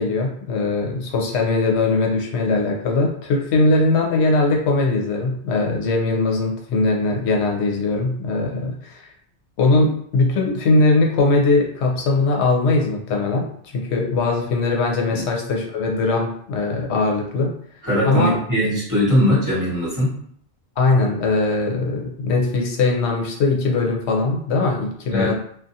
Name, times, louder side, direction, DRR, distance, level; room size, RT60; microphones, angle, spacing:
voice 1, 0.0-9.0 9.6-17.5 18.0-18.4 20.8-25.3, left 3 dB, 80° left, 0 dB, 0.8 m, -20 dB
voice 2, 17.8-20.1 25.1-25.3, equal, 20° right, -10 dB, 1.2 m, -20 dB
2.4 x 2.2 x 2.6 m, 0.63 s
omnidirectional pair, 1.1 m